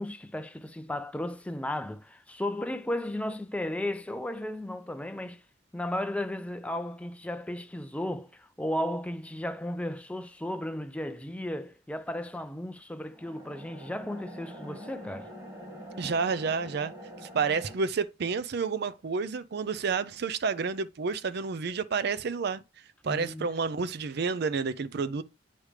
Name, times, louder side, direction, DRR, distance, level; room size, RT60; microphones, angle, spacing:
voice 1, 0.0-5.4 5.7-15.3 23.1-23.5, left 1 dB, 5° left, 0.5 m, -34 dB
sound 1, 13.1-17.8, equal, 20° right, 2.3 m, -45 dB
voice 2, 16.0-16.9 17.2-22.6 23.0-25.2, right 5 dB, 60° right, 0.5 m, -30 dB
8.7 x 3.3 x 4.9 m
head